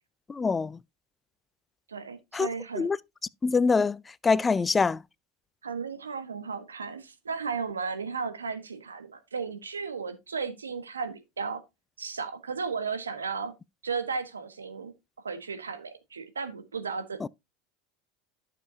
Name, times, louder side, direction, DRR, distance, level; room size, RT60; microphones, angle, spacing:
voice 1, 0.3-0.8 2.3-2.5 2.8-3.0 3.4-4.0 4.2-5.0 17.2-17.3, left 4 dB, 20° left, 0.4 m, -24 dB
voice 2, 1.9-2.9 5.6-11.6 12.0-13.5 13.8-14.9 15.2-17.3, right 5 dB, 90° right, 1.3 m, -34 dB
11.5 x 6.8 x 2.8 m
hypercardioid pair, 85°, 0 cm